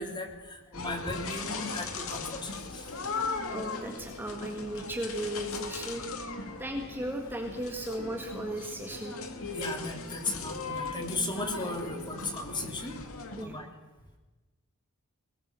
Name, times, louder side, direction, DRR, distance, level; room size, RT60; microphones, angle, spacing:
voice 1, 0.0-3.0 5.9-6.0 6.5-6.7 9.5-12.9 13.3-13.7, left 2 dB, 20° left, 4 dB, 3.0 m, -36 dB
sound 1, 0.7-13.4, left 3 dB, 65° left, 2.4 m, -38 dB
voice 2, 3.5-6.1 6.6-9.2 13.4-13.6, right 1 dB, 10° right, 2 dB, 1.9 m, -36 dB
21.5 x 19.0 x 6.9 m, 1.2 s
head